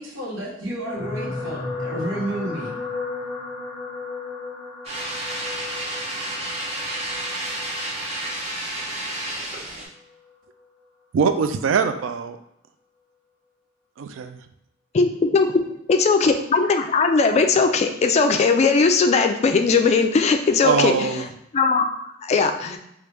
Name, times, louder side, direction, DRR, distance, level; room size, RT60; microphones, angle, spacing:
voice 1, 0.0-2.7, right 1 dB, 90° right, 1.2 m, -31 dB
sound 1, 0.9-9.3 10.1-10.3 10.6-10.7, left 3 dB, 10° left, 0.8 m, -34 dB
sound 2, 4.8-9.8, right 1 dB, 35° right, 0.7 m, -30 dB
voice 2, 11.1-12.4 14.0-14.4 20.6-21.2, right 5 dB, 75° right, 0.3 m, -22 dB
voice 3, 14.9-21.3 21.5-22.8, left 4 dB, 35° left, 0.3 m, -19 dB
3.1 x 2.4 x 3.3 m
head